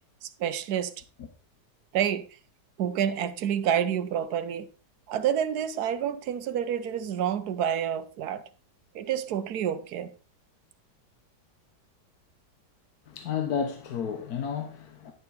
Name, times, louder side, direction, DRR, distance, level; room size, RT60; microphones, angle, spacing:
voice 1, 0.2-0.9 1.9-2.3 2.8-4.7 5.1-8.4 8.9-10.1, right 9 dB, 70° right, 1.2 m, -28 dB
voice 2, 13.1-15.1, left 7 dB, 65° left, 1.5 m, -32 dB
10.5 x 6.7 x 4.1 m
omnidirectional pair, 1.8 m